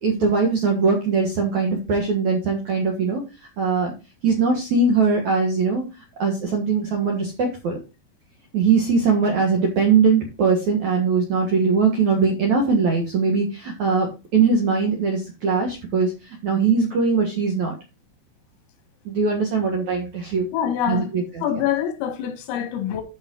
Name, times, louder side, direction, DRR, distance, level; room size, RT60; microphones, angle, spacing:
voice 1, 0.0-3.2 3.6-3.9 4.2-5.8 6.2-7.8 8.5-17.7 19.1-20.5 20.9-21.4, right 4 dB, 65° right, 1.9 m, -21 dB
voice 2, 20.5-21.1 21.4-23.0, left 9 dB, 85° left, 4.4 m, -25 dB
11.5 x 5.2 x 3.8 m
omnidirectional pair, 5.7 m